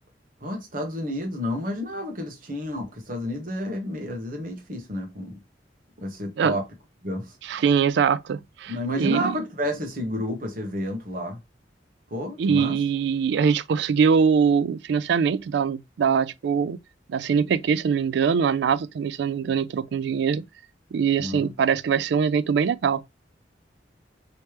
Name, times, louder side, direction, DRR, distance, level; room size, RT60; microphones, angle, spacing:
voice 1, 0.4-5.4 6.0-6.6 7.0-7.3 8.7-11.4 12.1-12.8 21.2-21.5, left 1 dB, 50° right, 1.2 m, -30 dB
voice 2, 7.4-9.4 12.4-16.8 17.1-20.4 20.9-23.0, right 6 dB, 70° right, 0.3 m, -23 dB
3.3 x 3.2 x 3.0 m
head